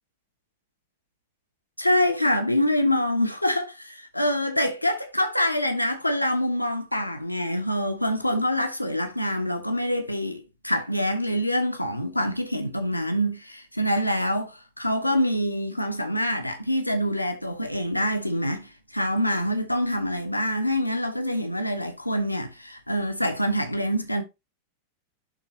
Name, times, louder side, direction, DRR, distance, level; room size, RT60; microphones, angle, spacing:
voice 1, 1.8-24.2, equal, 90° left, 1.2 m, -25 dB
11.5 x 3.9 x 2.8 m
figure-of-eight pair, 90°, 0 cm